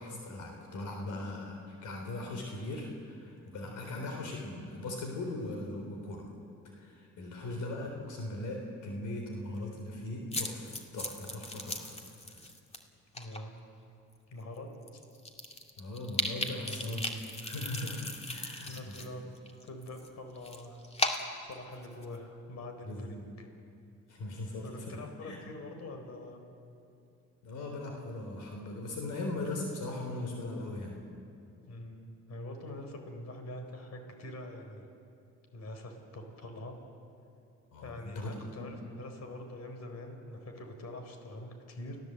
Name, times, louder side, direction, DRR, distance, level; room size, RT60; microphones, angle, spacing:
voice 1, 0.0-6.3 6.6-11.9 15.8-17.1 17.4-18.9 22.8-23.2 24.1-25.4 27.4-31.0 37.7-38.7, left 2 dB, 80° left, 2 dB, 3.7 m, -39 dB
sound 1, 10.3-12.8 13.1-13.4 14.1-14.2 14.6-14.7 14.9-19.1 19.3-22.2, left 1 dB, 20° left, 2.3 m, -37 dB
voice 2, 13.1-13.5 14.3-15.0 16.5-17.2 18.7-19.2 19.6-20.8 21.4-23.5 24.6-26.4 31.7-34.9 35.5-36.8 37.8-42.0, left 1 dB, 60° left, 5 dB, 4.1 m, -44 dB
29.5 x 16.0 x 8.0 m, 2.6 s
cardioid pair, 90°, 30 cm